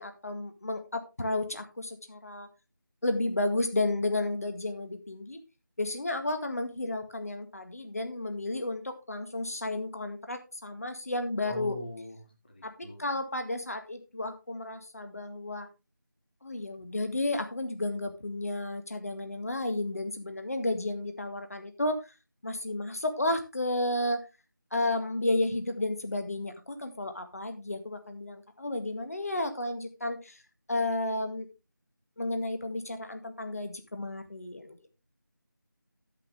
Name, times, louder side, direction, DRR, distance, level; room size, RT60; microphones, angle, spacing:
voice 1, 0.0-2.5 3.0-5.4 5.8-11.8 12.6-15.7 16.4-22.1 22.4-24.3 24.7-30.4 30.7-31.5 32.2-34.8, left 2 dB, 45° left, 7 dB, 1.8 m, -32 dB
voice 2, 11.4-12.1 12.6-13.0, left 1 dB, 25° left, 3 dB, 2.0 m, -40 dB
11.5 x 8.5 x 3.5 m, 0.28 s
figure-of-eight pair, 175°, 11 cm